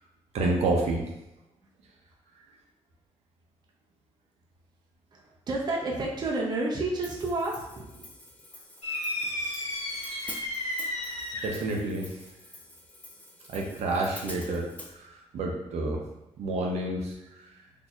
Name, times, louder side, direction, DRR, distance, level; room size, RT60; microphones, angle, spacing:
voice 1, 0.3-1.1 11.4-12.0 13.5-14.7 15.0-16.0 16.4-17.1, right 2 dB, 85° right, -1 dB, 0.7 m, -28 dB
voice 2, 5.1-8.1 8.5-8.6, right 2 dB, 40° right, -2 dB, 0.6 m, -31 dB
Hi-hat, 7.0-14.9, left 2 dB, 15° left, 0.4 m, -47 dB
sound 1, 8.8-11.7, left 1 dB, 85° left, 1.0 m, -33 dB
4.2 x 2.7 x 2.3 m, 0.92 s
wide cardioid pair, 160°, 11 cm